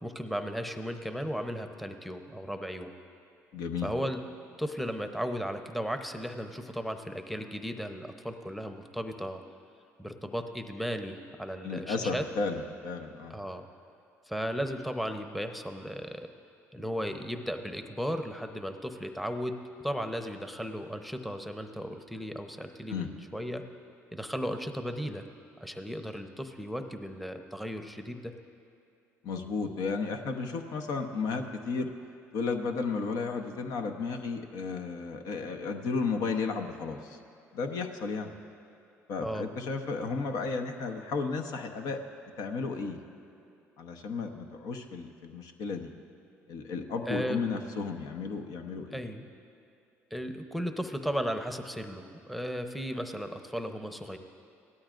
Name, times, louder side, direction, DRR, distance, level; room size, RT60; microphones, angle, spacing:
voice 1, 0.0-2.9 3.8-4.2 4.6-9.4 10.0-12.2 13.3-13.7 14.3-16.3 16.7-19.6 19.8-23.6 24.1-25.3 25.6-28.3 39.2-39.5 47.1-47.4 48.9-49.2 50.1-54.2, equal, ahead, 6 dB, 0.8 m, -35 dB
voice 2, 3.5-3.9 11.6-13.3 22.9-23.1 29.2-31.9 32.3-37.2 37.5-38.3 39.1-42.0 42.4-43.0 43.8-45.9 46.5-49.0, left 4 dB, 75° left, 5 dB, 0.9 m, -33 dB
17.5 x 12.5 x 2.5 m, 2.7 s
supercardioid pair, 75°, 6 cm